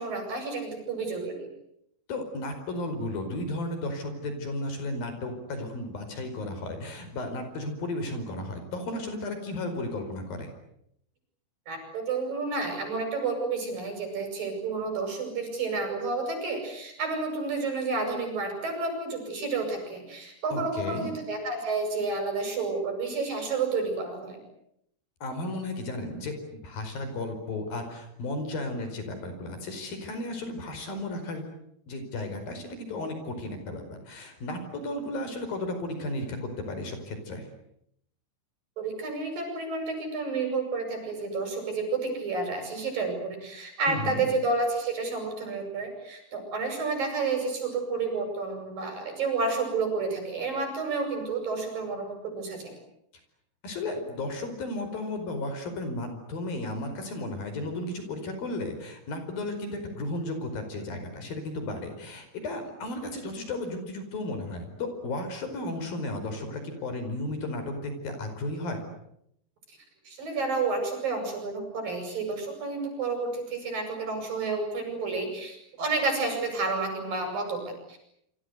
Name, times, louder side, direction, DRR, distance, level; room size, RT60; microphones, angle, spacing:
voice 1, 0.0-1.5 11.7-24.4 38.8-52.8 70.0-78.0, right 3 dB, 55° right, 4 dB, 9.7 m, -30 dB
voice 2, 2.1-10.5 20.5-21.1 25.2-31.5 31.9-37.5 43.9-44.3 53.6-68.8, left 2 dB, 60° left, 7 dB, 6.5 m, -34 dB
28.0 x 25.5 x 8.2 m, 0.76 s
omnidirectional pair, 4.8 m